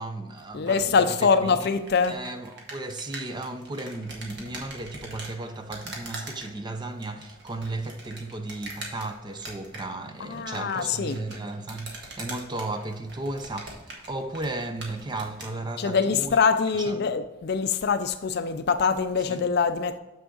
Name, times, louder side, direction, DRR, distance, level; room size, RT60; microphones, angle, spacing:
voice 1, 0.0-1.7 2.0-16.4 16.8-17.1 19.3-19.4, right 2 dB, 20° right, 0.5 m, -35 dB
voice 2, 0.5-2.2 10.2-11.2 15.8-20.0, left 5 dB, 50° left, 0.4 m, -24 dB
sound 1, 1.5-15.6, right 2 dB, 55° right, 1.6 m, -43 dB
6.9 x 6.3 x 3.8 m
head